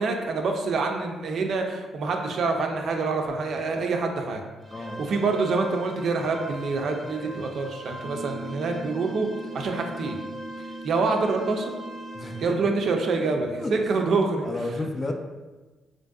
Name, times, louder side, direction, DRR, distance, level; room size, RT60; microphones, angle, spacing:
voice 1, 0.0-4.4 5.0-9.3 9.5-10.2 10.8-11.7 12.4-14.5, right 4 dB, 60° right, 3 dB, 0.4 m, -26 dB
sound 1, 4.6-12.5, right 1 dB, ahead, 0.7 m, -42 dB
sound 2, 8.0-13.9, right 1 dB, 55° left, 0.7 m, -40 dB
voice 2, 12.1-12.6 13.6-14.0 14.4-15.1, left 2 dB, 25° left, 4 dB, 0.3 m, -32 dB
3.2 x 2.5 x 2.3 m, 1.2 s
cardioid pair, 90°, 0 cm